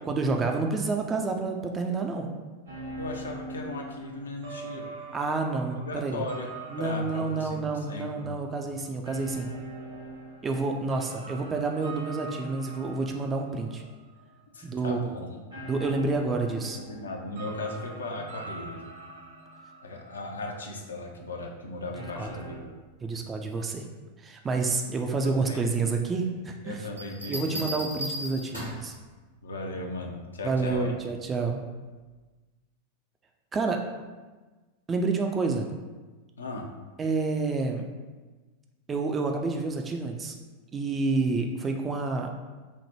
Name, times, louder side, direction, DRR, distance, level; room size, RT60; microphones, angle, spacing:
voice 1, 0.1-2.3 5.1-6.2 6.7-9.5 10.4-13.8 14.6-15.1 15.7-16.8 22.2-22.3 23.0-23.8 24.2-26.9 27.3-28.9 30.4-31.6 33.5-33.8 34.9-35.7 37.0-37.8 38.9-40.4 40.7-42.3, right 3 dB, 20° right, 3 dB, 0.3 m, -29 dB
sound 1, 2.7-14.4 14.7-15.0 15.5-20.9 21.3-21.4 22.0-22.6, right 2 dB, 65° right, 0.9 m, -43 dB
voice 2, 3.0-4.9 5.8-6.5 6.8-8.3 14.5-15.4 16.7-18.8 19.8-22.7 25.2-25.7 26.6-27.7 29.4-30.9 36.4-36.7, left 2 dB, 70° left, 1 dB, 0.5 m, -37 dB
Bell, 27.0-28.9 30.5-30.9, equal, 85° right, 1.1 m, -36 dB
3.2 x 2.1 x 4.2 m, 1.3 s
figure-of-eight pair, 90°, 0 cm